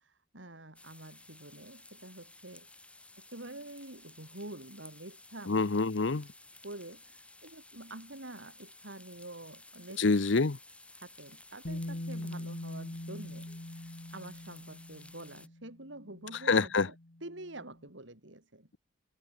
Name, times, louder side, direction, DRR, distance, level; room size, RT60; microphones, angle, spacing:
voice 1, 0.0-2.7 3.3-5.7 6.6-10.0 10.9-17.0 17.2-18.7, right 2 dB, 75° right, 4.5 m, -47 dB
sound 1, 0.8-15.5, left 2 dB, 5° left, 4.9 m, -55 dB
voice 2, 5.5-6.3 10.0-10.6 16.5-16.9, left 4 dB, 70° left, 0.8 m, -26 dB
Bass guitar, 11.6-17.7, left 1 dB, 55° left, 1.6 m, -43 dB
head